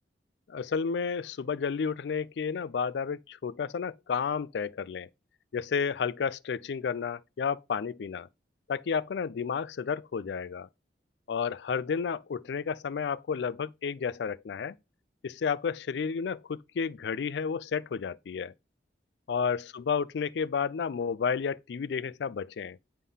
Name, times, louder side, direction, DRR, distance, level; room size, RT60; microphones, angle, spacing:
voice 1, 0.5-5.1 5.5-8.3 8.7-10.7 11.3-14.7 15.2-18.5 19.3-22.8, left 6 dB, 75° left, 0.4 m, -31 dB
9.7 x 3.7 x 5.5 m
head